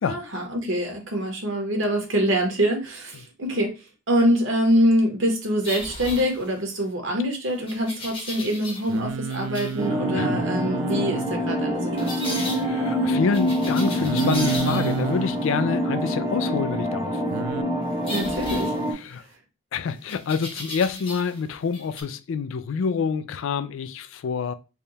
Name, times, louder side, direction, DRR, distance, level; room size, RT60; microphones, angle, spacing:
voice 1, 0.0-3.7 4.1-12.5 18.1-18.7, equal, 65° right, 1.1 m, -25 dB
sound 1, 5.6-6.8 7.7-9.0 9.3-9.8 12.0-12.6 13.3-15.2 18.0-19.3 20.1-21.4 21.7-22.0, left 1 dB, 25° left, 0.9 m, -36 dB
Singing, 8.9-11.3 11.9-13.1 14.0-15.4 17.3-17.6, right 6 dB, 80° right, 0.3 m, -30 dB
sound 2, 9.8-18.9, equal, 20° right, 0.8 m, -26 dB
voice 2, 10.1-10.5 12.5-17.2 18.9-19.2 19.7-24.5, left 5 dB, 65° left, 0.3 m, -27 dB
3.4 x 2.3 x 4.0 m
head